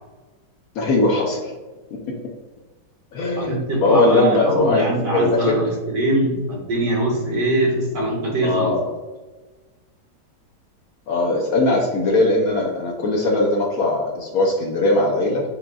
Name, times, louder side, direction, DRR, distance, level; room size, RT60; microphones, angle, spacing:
voice 1, 0.8-1.5 3.1-5.6 8.4-8.9 11.1-15.4, left 2 dB, 70° left, 0 dB, 0.9 m, -20 dB
voice 2, 3.4-8.7, right 1 dB, 75° right, -5 dB, 2.0 m, -22 dB
6.6 x 2.3 x 2.3 m, 1.2 s
omnidirectional pair, 1.9 m